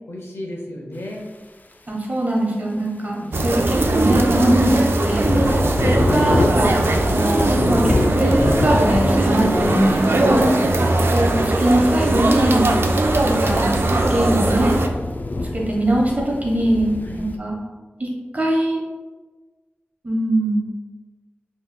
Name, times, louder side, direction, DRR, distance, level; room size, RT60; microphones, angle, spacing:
voice 1, 0.1-1.2 3.2-3.4 10.6-10.8 17.0-17.2, left 1 dB, 80° left, -1 dB, 0.8 m, -34 dB
voice 2, 1.9-5.6 5.9-6.7 7.1-10.5 11.1-12.7 13.2-14.7 15.5-17.6 18.0-18.1 18.3-18.8 20.0-20.7, right 1 dB, 40° right, -2 dB, 1.2 m, -21 dB
sound 1, 3.3-14.9, right 2 dB, 70° right, 0.4 m, -19 dB
sound 2, 5.0-17.4, left 2 dB, 45° left, 0.3 m, -27 dB
5.5 x 3.1 x 2.3 m, 1.3 s
cardioid pair, 45°, 4 cm